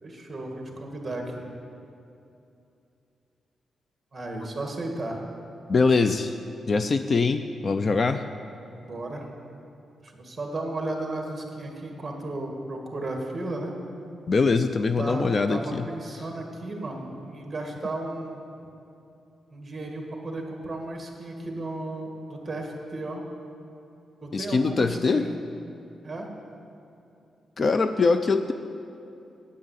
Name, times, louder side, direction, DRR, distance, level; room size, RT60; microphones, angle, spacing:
voice 1, 0.0-1.5 4.1-5.2 8.8-9.3 10.0-13.8 14.8-18.4 19.5-23.2 24.2-25.3 26.0-26.3, right 2 dB, 20° right, 1 dB, 1.9 m, -34 dB
voice 2, 5.7-6.4 6.7-8.2 14.3-15.8 24.3-25.3 27.6-28.5, left 4 dB, 40° left, 9 dB, 0.4 m, -23 dB
9.4 x 8.6 x 8.2 m, 2.7 s
wide cardioid pair, 125°, 0 cm